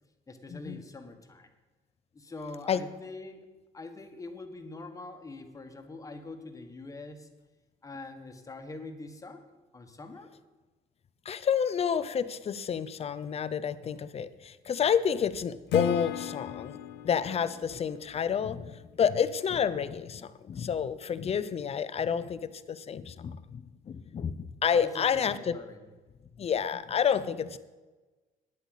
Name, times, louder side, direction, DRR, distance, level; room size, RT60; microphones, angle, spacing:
voice 1, 0.3-1.5 2.1-3.4 3.7-7.3 7.8-9.4 9.7-10.3 24.7-25.9, left 3 dB, 20° left, 6 dB, 1.5 m, -44 dB
voice 2, 11.3-16.8 17.0-25.5 26.4-27.6, left 7 dB, 35° left, 14 dB, 0.7 m, -29 dB
Acoustic guitar / Strum, 15.7-18.9, left 10 dB, 85° left, 0.6 m, -37 dB
10.0 x 8.2 x 8.1 m, 1.2 s
cardioid pair, 110°, 17 cm